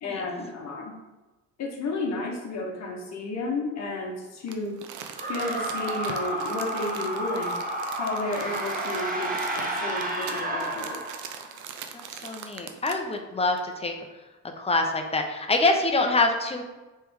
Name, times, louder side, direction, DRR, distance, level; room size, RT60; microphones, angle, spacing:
voice 1, 0.0-0.9 1.6-4.8 5.3-7.5 8.0-11.1, left 2 dB, 65° left, 0 dB, 0.9 m, -32 dB
Crumpling crinkling, 4.5-13.1 13.6-13.7, right 7 dB, 75° right, 0.5 m, -41 dB
sound 1, 5.1-11.6, right 1 dB, 30° right, 1.0 m, -31 dB
voice 2, 11.9-13.9 14.6-16.6, left 2 dB, 20° left, 4 dB, 0.6 m, -25 dB
3.3 x 3.2 x 4.7 m, 1.1 s
cardioid pair, 90°, 30 cm